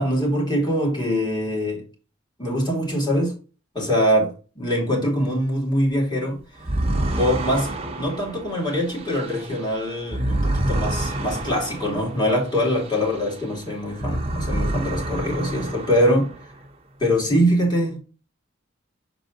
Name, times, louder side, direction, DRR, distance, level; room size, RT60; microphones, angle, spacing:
voice 1, 0.0-1.8 2.4-3.3 3.7-6.4 7.2-7.7 8.0-16.3 17.0-18.0, equal, 20° left, 2.7 m, -23 dB
sound 1, 6.6-13.5 13.9-16.5, right 1 dB, 30° right, 1.0 m, -28 dB
7.0 x 4.1 x 3.9 m
head